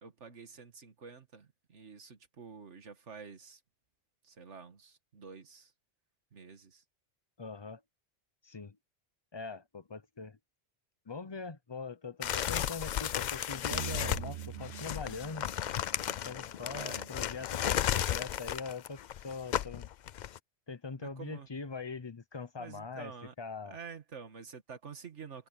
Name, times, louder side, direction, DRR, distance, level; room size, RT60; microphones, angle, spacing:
voice 1, 0.0-3.6 4.2-5.7 6.3-6.8 16.7-17.3 21.0-21.5 22.6-23.3 23.6-25.5, right 5 dB, 85° right, 2.0 m, -49 dB
voice 2, 7.4-7.8 8.4-8.8 9.3-10.4 11.1-15.5 16.2-19.0 19.2-19.9 20.7-23.1 23.4-23.8, left 4 dB, 25° left, 0.8 m, -42 dB
sound 1, 12.2-20.4, left 10 dB, 60° left, 0.5 m, -34 dB
sound 2, 13.7-17.0, right 12 dB, 60° right, 0.9 m, -43 dB
omnidirectional pair, 1.2 m